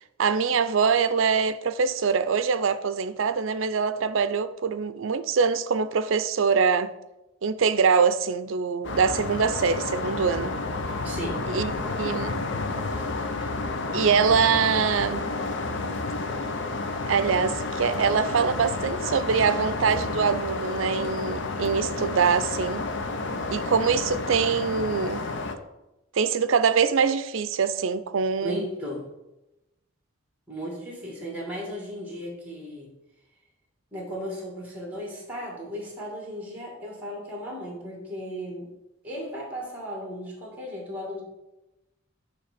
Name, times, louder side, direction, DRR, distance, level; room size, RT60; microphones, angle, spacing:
voice 1, 0.2-6.9 7.4-10.5 11.5-11.7 12.0-12.5 13.9-15.2 17.1-22.8 23.5-25.2 26.1-28.6, right 6 dB, 70° right, 0.5 m, -24 dB
sound 1, 8.8-25.6, left 3 dB, 60° left, 0.7 m, -30 dB
voice 2, 11.0-11.5 28.4-29.1 30.5-32.9 33.9-38.7 39.0-41.2, equal, 10° right, 2.1 m, -35 dB
9.5 x 3.3 x 6.7 m
head